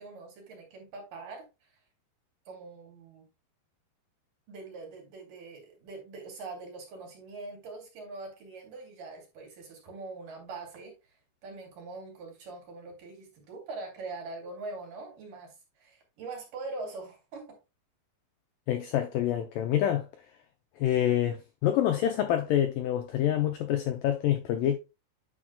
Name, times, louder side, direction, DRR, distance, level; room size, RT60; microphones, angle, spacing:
voice 1, 0.0-1.8 2.5-3.3 4.5-17.6, right 3 dB, 55° right, 3.8 m, -43 dB
voice 2, 18.7-20.1 20.8-24.8, left 11 dB, 90° left, 1.9 m, -27 dB
9.7 x 6.3 x 2.2 m
omnidirectional pair, 4.7 m